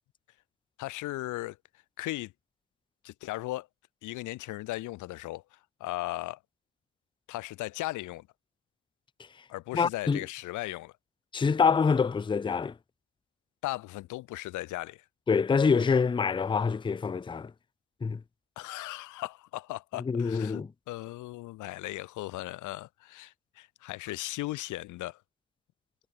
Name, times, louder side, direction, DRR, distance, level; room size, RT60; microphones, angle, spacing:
voice 1, 0.8-1.6 2.0-2.3 3.0-3.7 4.0-6.4 7.3-8.3 9.5-10.9 13.6-15.0 18.6-25.2, left 18 dB, 80° left, 0.6 m, -37 dB
voice 2, 9.7-10.2 11.3-12.7 15.3-17.5 18.0-18.2 20.0-20.7, left 5 dB, 15° left, 0.5 m, -26 dB
cardioid pair, 90°, 30 cm